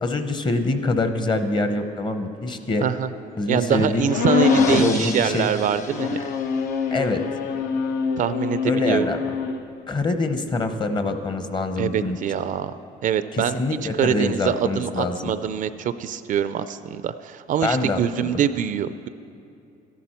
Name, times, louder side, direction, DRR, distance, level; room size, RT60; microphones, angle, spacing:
voice 1, 0.0-2.8 3.4-4.1 4.6-5.5 6.9-7.2 8.6-9.2 9.9-12.2 13.3-15.3 17.6-18.3, left 3 dB, 25° left, 8 dB, 0.9 m, -25 dB
sound 1, 2.5-7.6, left 4 dB, 45° left, 1.5 m, -38 dB
voice 2, 3.5-6.2 8.2-9.1 11.8-12.7 13.0-13.6 14.0-19.1, right 9 dB, 50° right, 13 dB, 0.4 m, -24 dB
sound 2, 4.1-5.0 5.9-9.6, left 5 dB, 70° left, 0.7 m, -24 dB
13.5 x 11.0 x 4.4 m, 2.6 s
cardioid pair, 110°, 17 cm